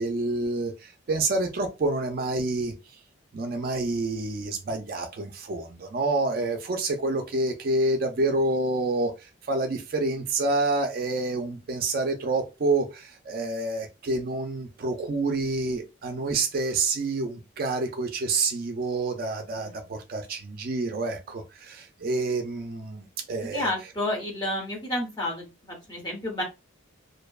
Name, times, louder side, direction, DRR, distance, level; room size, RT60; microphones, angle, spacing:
voice 1, 0.0-2.7 3.3-23.7, right 2 dB, 45° right, 0.3 m, -28 dB
voice 2, 23.4-26.4, left 1 dB, 20° left, 0.9 m, -31 dB
2.6 x 2.2 x 2.3 m
head